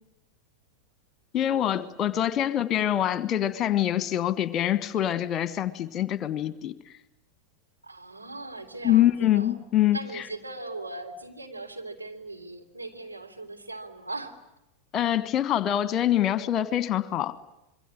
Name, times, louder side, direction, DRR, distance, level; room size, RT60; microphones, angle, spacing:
voice 1, 1.3-6.7 8.8-10.0 14.9-17.3, left 12 dB, 30° left, 1.4 m, -25 dB
voice 2, 7.8-9.5 9.9-14.4, right 2 dB, 85° right, 3.4 m, -39 dB
26.5 x 22.5 x 9.9 m
figure-of-eight pair, 90°, 0 cm